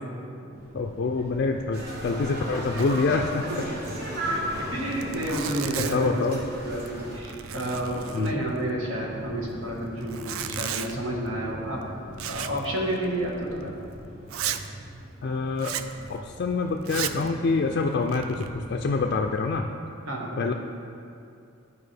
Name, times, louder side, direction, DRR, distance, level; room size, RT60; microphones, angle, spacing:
sound 1, 0.5-19.6, right 1 dB, 35° right, 1.2 m, -42 dB
voice 1, 0.7-3.4 5.9-6.4 8.1-8.4 15.2-15.8 16.1-19.6 20.4-20.5, left 4 dB, 50° left, 2 dB, 0.3 m, -26 dB
sound 2, 1.7-7.2, right 1 dB, 50° right, 1.2 m, -35 dB
Zipper (clothing), 2.8-3.2 3.4-3.5 3.8-4.0 4.6-4.7 4.9-6.2 6.7-7.0 7.2-8.6 10.0-11.0 12.2-12.7 12.9-13.1 13.6-13.7 14.3-14.7 15.6-15.9 16.8-17.3 17.9-18.5, right 10 dB, 90° right, 0.4 m, -34 dB
voice 2, 4.7-13.7 20.1-20.5, right 1 dB, 70° right, -2 dB, 1.4 m, -31 dB
11.5 x 4.7 x 3.3 m, 2.5 s
head